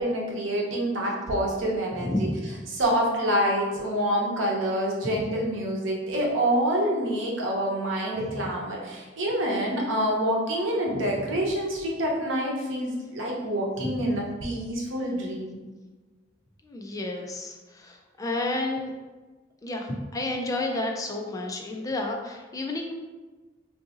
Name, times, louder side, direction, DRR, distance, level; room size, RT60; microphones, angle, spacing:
voice 1, 0.0-2.1 2.7-15.6, right 1 dB, 85° right, -2 dB, 0.8 m, -27 dB
voice 2, 2.0-2.3 5.1-5.2 8.2-8.3 13.8-14.0 16.6-18.9 19.6-22.9, left 2 dB, 20° left, 1 dB, 0.3 m, -31 dB
3.7 x 2.7 x 2.4 m, 1.3 s
head